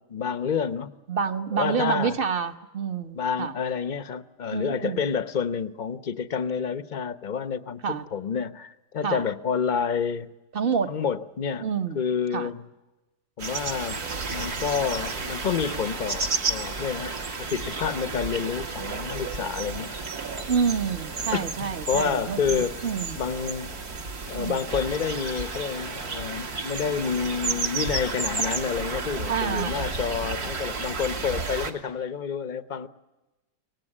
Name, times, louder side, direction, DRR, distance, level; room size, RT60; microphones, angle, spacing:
voice 1, 0.0-0.9 1.5-2.2 3.1-10.3 10.9-11.7 11.9-12.7 13.4-14.0 14.3-19.9 21.3-21.4 21.9-22.9 23.1-23.7 24.3-32.9, left 6 dB, 35° left, 0.8 m, -29 dB
voice 2, 1.1-3.5 4.5-5.0 7.8-8.0 9.0-9.2 10.5-10.9 11.6-12.0 12.3-12.5 20.5-23.2 24.3-24.6 29.2-29.9, right 6 dB, 35° right, 1.2 m, -28 dB
sound 1, 13.4-31.7, right 4 dB, 60° right, 2.4 m, -32 dB
24.0 x 19.0 x 9.9 m
omnidirectional pair, 1.9 m